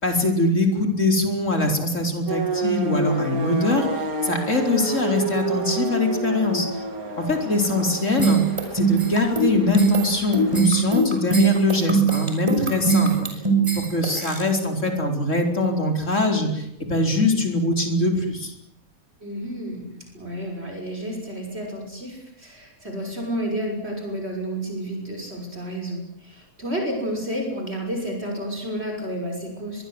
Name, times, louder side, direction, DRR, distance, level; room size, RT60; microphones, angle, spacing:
voice 1, 0.0-3.9 4.2-6.7 7.2-8.4 8.7-13.3 13.7-18.5, left 2 dB, 60° left, 3 dB, 5.0 m, -22 dB
sound 1, 2.3-10.6, right 3 dB, 85° right, 3.2 m, -29 dB
voice 2, 7.5-7.9 19.2-29.8, equal, 45° right, 1 dB, 6.3 m, -31 dB
sound 2, 8.2-14.4, right 5 dB, 20° right, 5.5 m, -21 dB
23.0 x 23.0 x 8.0 m, 0.76 s
omnidirectional pair, 1.5 m